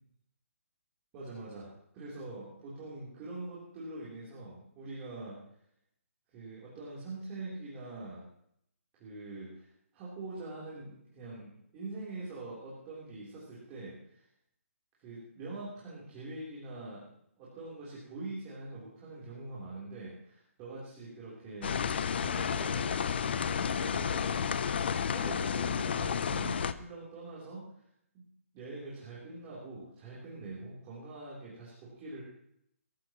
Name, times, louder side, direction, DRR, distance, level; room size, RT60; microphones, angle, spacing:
voice 1, 1.1-5.4 6.3-8.3 9.0-9.7 9.9-14.2 15.0-17.1 17.4-21.8 22.2-27.6 28.1-28.2 28.5-32.2, right 2 dB, 20° right, -7 dB, 3.5 m, -44 dB
sound 1, 21.6-26.7, left 7 dB, 45° left, 0.6 m, -31 dB
22.0 x 14.5 x 3.0 m, 0.73 s
hypercardioid pair, 165°, 8 cm